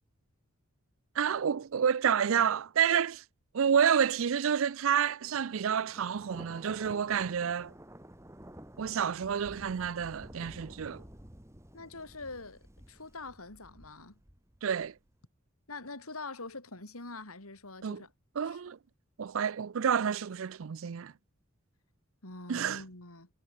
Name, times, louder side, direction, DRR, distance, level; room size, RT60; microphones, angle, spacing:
voice 1, 1.2-3.2 3.5-7.7 8.8-11.0 14.6-14.9 17.8-18.0 18.4-18.8 19.2-21.1 22.5-22.8, right 7 dB, 65° right, 0.4 m, -29 dB
Thunder, 5.3-15.1, equal, 15° right, 3.0 m, -52 dB
voice 2, 11.7-14.2 15.7-18.1 18.4-18.6 22.2-23.3, left 3 dB, 85° left, 5.2 m, -44 dB
head